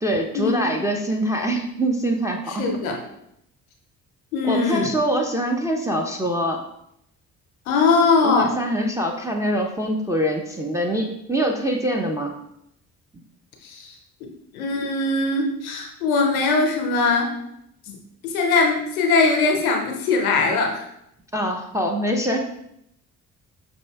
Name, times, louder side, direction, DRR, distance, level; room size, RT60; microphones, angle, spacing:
voice 1, 0.0-2.6 4.4-6.6 8.2-12.3 21.3-22.4, equal, 10° right, 1 dB, 0.4 m, -24 dB
voice 2, 2.6-3.0 4.3-4.9 7.7-8.5 13.6-13.9 14.5-17.3 17.9-18.0 18.2-20.8, left 4 dB, 90° left, 2 dB, 0.6 m, -21 dB
5.3 x 2.5 x 2.2 m, 0.78 s
hypercardioid pair, 40°, 42 cm